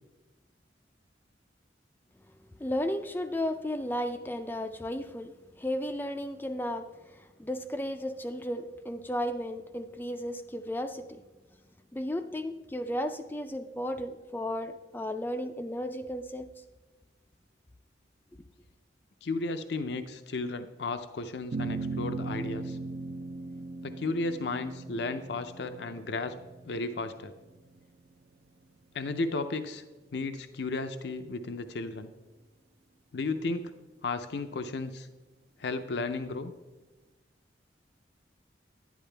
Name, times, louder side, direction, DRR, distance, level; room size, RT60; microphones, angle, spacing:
voice 1, 2.6-11.2 11.9-16.5, left 1 dB, 10° left, 8 dB, 0.4 m, -34 dB
voice 2, 19.2-22.8 23.8-26.4 26.7-27.3 28.9-29.8 30.1-32.1 33.1-33.7 34.0-35.1 35.6-36.5, left 3 dB, 70° left, 9 dB, 0.5 m, -34 dB
sound 1, 21.5-28.1, right 3 dB, 60° right, 0.5 m, -38 dB
10.5 x 10.5 x 3.3 m, 1.2 s
head